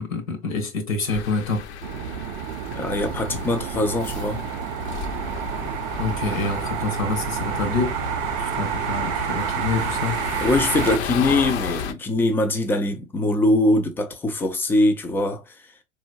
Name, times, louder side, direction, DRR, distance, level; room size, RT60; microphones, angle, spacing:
voice 1, 0.0-1.7 6.0-8.0 8.4-10.5, left 3 dB, 75° left, 1.4 m, -27 dB
sound 1, 1.1-11.9, left 6 dB, 55° left, 0.7 m, -33 dB
sound 2, 1.8-11.0, right 10 dB, 45° right, 0.5 m, -29 dB
voice 2, 2.8-4.5 10.4-15.5, left 2 dB, 5° left, 0.3 m, -22 dB
4.3 x 3.2 x 2.4 m
figure-of-eight pair, 95°, 40 cm